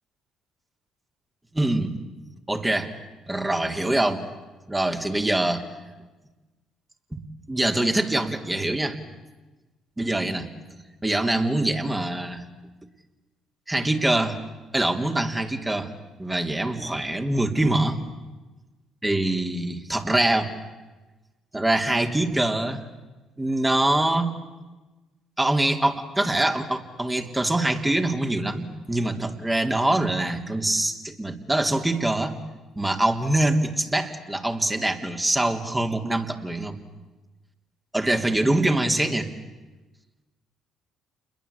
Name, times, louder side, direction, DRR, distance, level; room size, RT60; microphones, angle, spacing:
voice 1, 1.5-2.0 2.5-2.9 3.3-4.2 4.7-5.6 7.1-7.2 7.5-9.0 10.0-10.5 11.0-12.4 13.7-14.4 14.7-15.9 16.2-18.0 19.0-20.5 21.5-22.8 23.4-24.3 25.4-32.4 32.8-36.8 37.9-39.3, right 1 dB, 15° right, 5 dB, 3.2 m, -24 dB
29.0 x 21.5 x 8.4 m, 1.2 s
hypercardioid pair, 60°, 0 cm